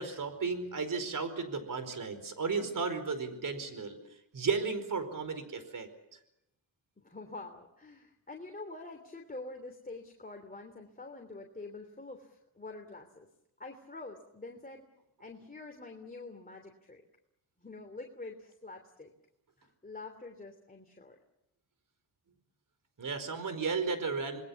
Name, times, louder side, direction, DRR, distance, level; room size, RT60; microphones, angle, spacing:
voice 1, 0.0-4.0 4.3-5.9 23.0-24.4, right 4 dB, 55° right, 10 dB, 4.9 m, -34 dB
voice 2, 7.0-13.3 13.6-14.8 15.2-17.0 17.6-19.1 19.6-21.2, left 3 dB, 20° left, 3 dB, 3.2 m, -46 dB
28.0 x 20.5 x 7.3 m, 0.84 s
cardioid pair, 75°, 39 cm